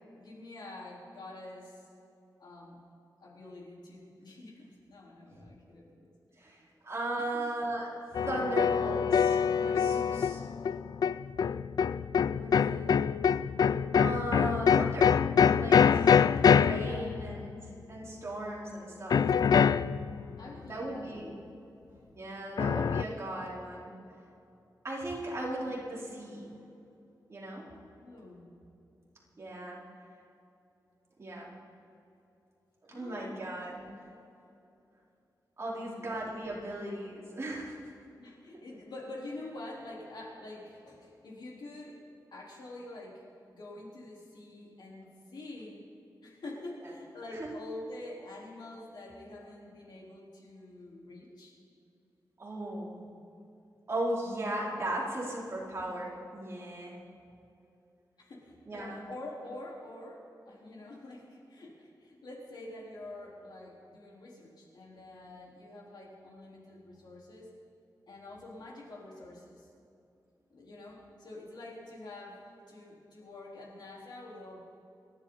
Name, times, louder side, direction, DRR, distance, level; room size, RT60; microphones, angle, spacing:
voice 1, 0.2-1.9 2.4-2.8 3.2-6.1 7.1-7.5 12.3-13.0 16.8-17.3 20.4-21.4 27.8-28.6 29.9-30.0 32.9-33.5 35.7-36.1 38.2-42.0 42.3-43.2 43.5-45.8 46.2-51.6 57.0-57.2 58.2-67.5 68.1-69.7 70.5-74.6, left 2 dB, 80° left, -3 dB, 4.0 m, -47 dB
voice 2, 6.8-7.9 8.3-10.5 14.0-15.1 15.6-16.1 16.5-17.5 17.9-19.2 20.7-21.3 22.2-23.9 24.8-26.6 27.3-27.6 29.4-29.8 31.2-31.5 32.9-33.8 35.6-37.8 47.4-47.5 52.4-53.0 53.9-56.9 58.7-59.0, right 1 dB, 40° right, -5 dB, 4.1 m, -37 dB
sound 1, 8.1-17.7 19.1-20.4 22.6-23.0, left 7 dB, 65° left, 0.4 m, -25 dB
29.0 x 11.5 x 4.1 m, 2.7 s
wide cardioid pair, 140°, 7 cm